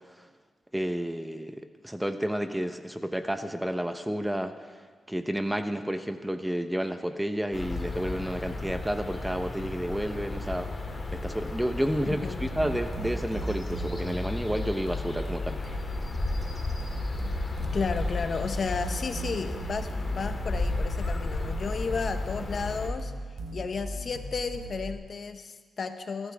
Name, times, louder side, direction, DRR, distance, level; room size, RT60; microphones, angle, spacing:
voice 1, 0.7-4.7 5.1-10.7 11.1-15.6, equal, 5° right, 8 dB, 0.9 m, -31 dB
sound 1, 7.5-22.9, left 2 dB, 30° left, 2.6 m, -34 dB
sound 2, 12.5-24.9, right 2 dB, 85° right, 4.2 m, -37 dB
voice 2, 17.6-23.1 23.5-26.3, left 5 dB, 55° left, 8 dB, 1.0 m, -33 dB
26.0 x 13.5 x 3.5 m, 1.5 s
cardioid pair, 80°, 0 cm